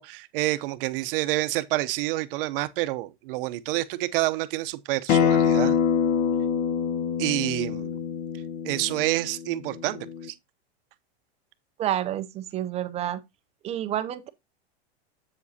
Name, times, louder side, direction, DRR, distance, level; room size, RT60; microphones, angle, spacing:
voice 1, 0.0-5.8 7.2-8.0 8.6-10.3, right 17 dB, 55° right, 0.8 m, -28 dB
Acoustic guitar, 5.1-10.3, left 7 dB, 40° left, 0.9 m, -25 dB
voice 2, 11.8-13.2 13.6-14.3, right 11 dB, 20° right, 0.5 m, -29 dB
7.5 x 7.4 x 2.7 m
supercardioid pair, 140°, 33 cm